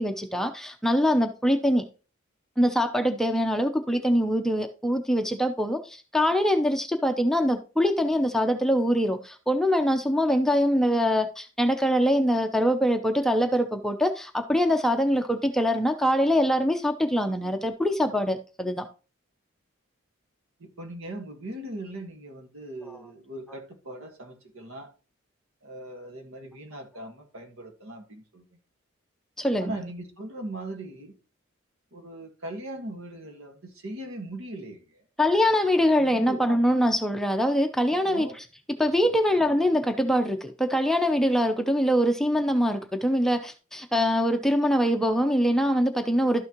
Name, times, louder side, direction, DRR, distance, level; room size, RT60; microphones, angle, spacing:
voice 1, 0.0-1.8 2.6-18.9 29.4-29.8 35.2-38.3 38.8-46.5, equal, ahead, 0.6 m, -23 dB
voice 2, 20.6-24.9 25.6-28.4 29.6-31.2 31.9-35.1 36.0-36.4 37.9-38.4 39.3-39.4, right 1 dB, 80° right, 1.7 m, -39 dB
12.0 x 6.1 x 3.0 m
head